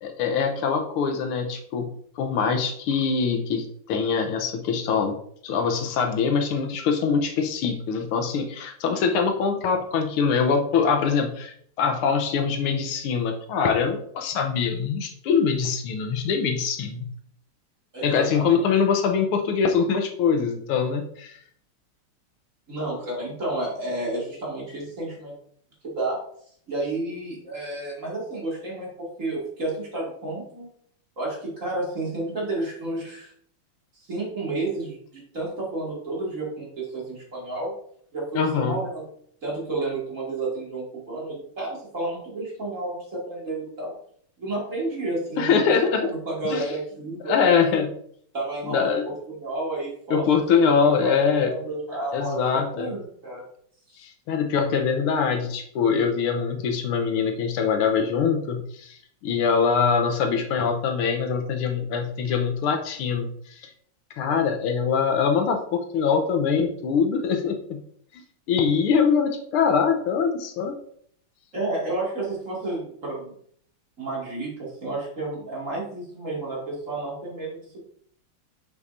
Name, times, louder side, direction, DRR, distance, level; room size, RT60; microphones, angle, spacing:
voice 1, 0.0-5.2 5.4-17.0 18.0-21.4 38.3-38.8 45.4-46.1 46.4-46.7 47.2-47.9 48.6-49.0 50.1-51.5 52.1-52.9 54.0-63.7 64.2-67.8 68.1-68.2 68.5-70.7, left 6 dB, 80° left, 5 dB, 1.7 m, -23 dB
voice 2, 17.9-18.6 22.7-25.3 25.8-26.2 26.7-30.7 31.2-33.3 33.9-37.7 38.1-39.0 39.4-43.9 44.4-45.7 46.0-47.4 48.3-48.9 49.3-50.3 51.0-51.1 51.4-53.4 71.5-73.3 74.0-77.8, right 2 dB, 35° right, -4 dB, 2.5 m, -31 dB
7.3 x 6.7 x 2.6 m, 0.63 s
omnidirectional pair, 2.4 m